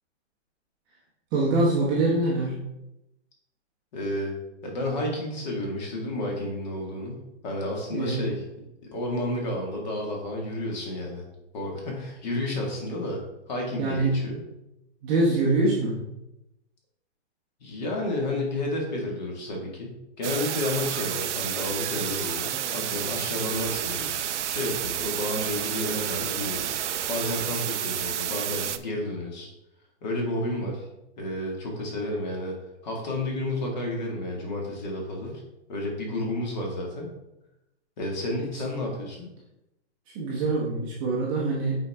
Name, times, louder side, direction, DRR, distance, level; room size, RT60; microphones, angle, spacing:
voice 1, 1.3-2.5 7.9-8.3 13.8-14.1 15.0-16.0 40.1-41.7, right 2 dB, 15° right, -5 dB, 0.8 m, -24 dB
voice 2, 3.9-4.4 4.6-8.4 8.9-11.2 11.5-13.2 13.5-14.4 17.6-26.8 27.1-29.5 30.0-30.9 31.2-32.6 32.8-35.4 35.7-37.1 38.0-39.3, left 1 dB, 40° left, 0 dB, 1.9 m, -31 dB
sound 1, 20.2-28.8, right 10 dB, 80° right, 0.6 m, -30 dB
8.2 x 4.6 x 3.5 m, 0.89 s
hypercardioid pair, 165°, 35 cm